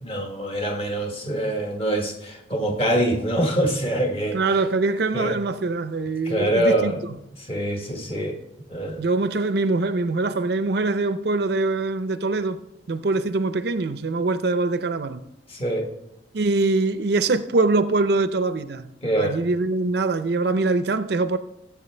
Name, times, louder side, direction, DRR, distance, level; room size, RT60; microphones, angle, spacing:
voice 1, 0.0-4.6 5.1-5.3 6.2-7.0 7.4-8.4 8.7-9.0 15.5-15.9 19.0-19.4, right 1 dB, 30° left, 1.2 m, -24 dB
voice 2, 4.3-6.9 9.0-12.6 12.9-15.2 16.3-18.9 19.2-21.4, right 3 dB, 55° right, 0.5 m, -23 dB
15.0 x 7.6 x 3.3 m
head